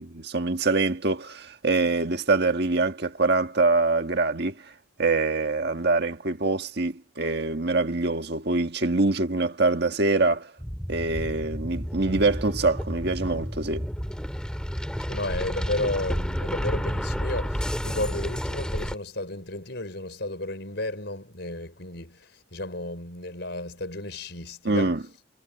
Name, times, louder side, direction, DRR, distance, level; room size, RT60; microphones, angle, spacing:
voice 1, 0.0-4.5 5.0-10.5 10.9-13.9 24.6-25.0, right 3 dB, 55° right, 1.7 m, -24 dB
sound 1, 10.6-19.0, equal, 5° left, 3.1 m, -31 dB
voice 2, 15.1-25.0, left 2 dB, 55° left, 5.6 m, -33 dB
head